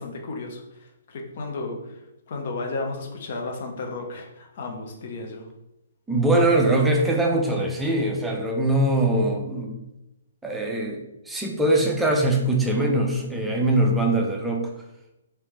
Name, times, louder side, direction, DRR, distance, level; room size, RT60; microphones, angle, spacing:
voice 1, 0.0-2.0 2.3-5.5, left 3 dB, 45° left, 2 dB, 0.7 m, -33 dB
voice 2, 6.1-9.8 10.4-14.7, right 1 dB, 5° right, 0 dB, 0.5 m, -22 dB
3.1 x 2.9 x 3.2 m, 0.90 s
figure-of-eight pair, 125°, 0 cm